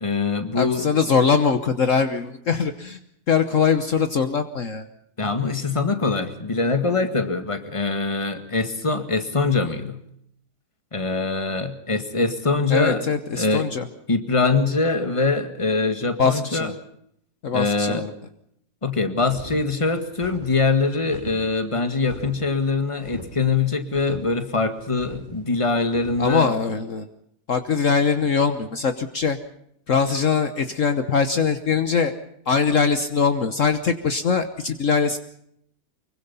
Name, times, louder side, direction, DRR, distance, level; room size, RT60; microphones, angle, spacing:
voice 1, 0.0-0.9 5.2-10.0 10.9-13.0 13.4-13.7 14.1-16.7 17.5-18.1 18.8-26.5, left 3 dB, 20° left, 8 dB, 1.9 m, -23 dB
voice 2, 0.5-3.0 3.3-4.8 12.7-13.9 16.2-16.7 17.4-18.1 26.2-27.1 27.5-29.4 29.9-32.1 32.5-35.2, left 5 dB, 55° left, 9 dB, 1.5 m, -22 dB
sound 1, 19.3-26.3, right 1 dB, 30° right, 3.0 m, -41 dB
24.5 x 23.5 x 5.6 m, 0.72 s
omnidirectional pair, 1.6 m